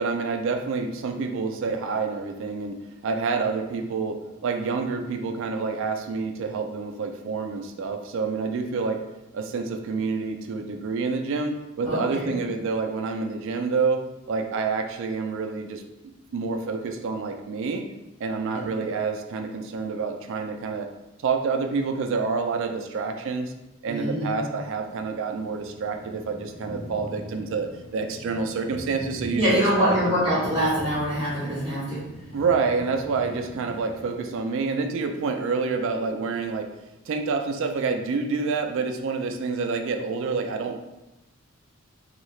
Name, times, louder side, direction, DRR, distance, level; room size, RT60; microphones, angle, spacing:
voice 1, 0.0-9.0 9.3-17.9 18.2-20.9 21.2-23.5 23.8-27.7 27.9-30.2 32.3-36.7 37.1-40.8, right 4 dB, 60° right, 5 dB, 0.3 m, -28 dB
voice 2, 11.9-12.4 18.5-18.7 23.9-24.4 29.4-32.1, equal, 20° right, -11 dB, 0.6 m, -24 dB
sound 1, 24.8-34.2, equal, 70° left, 1.0 m, -41 dB
2.7 x 2.3 x 3.1 m, 0.95 s
head